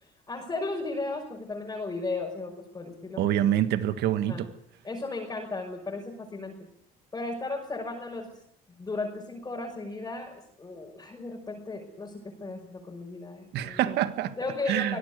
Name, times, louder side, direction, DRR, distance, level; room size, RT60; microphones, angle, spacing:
voice 1, 0.3-3.2 4.3-4.4 4.8-6.6 7.1-8.3 8.7-13.8 14.4-15.0, left 3 dB, 20° left, 5.8 m, -35 dB
voice 2, 3.2-4.5 13.5-14.4 14.7-15.0, right 11 dB, 80° right, 1.7 m, -26 dB
24.5 x 18.0 x 8.2 m
cardioid pair, 110°, 17 cm